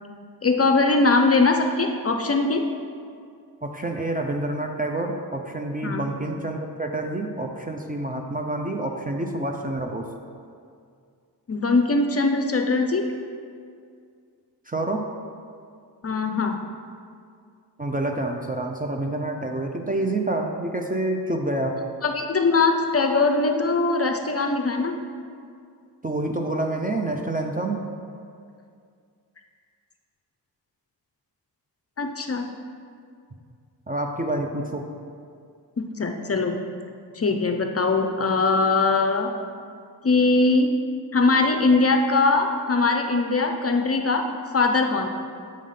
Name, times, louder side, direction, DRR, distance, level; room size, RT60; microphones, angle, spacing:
voice 1, 0.4-2.6 5.8-6.0 11.5-13.0 16.0-16.6 22.0-24.9 32.0-32.5 35.8-36.6 37.1-39.3 40.0-40.7 41.1-44.3 44.5-45.1, left 3 dB, 35° left, 4 dB, 0.5 m, -21 dB
voice 2, 3.6-10.1 14.7-15.1 17.8-21.8 26.0-27.9 33.9-34.9, right 2 dB, 20° right, 3 dB, 0.5 m, -28 dB
7.5 x 3.5 x 5.5 m, 2.3 s
cardioid pair, 75°, 43 cm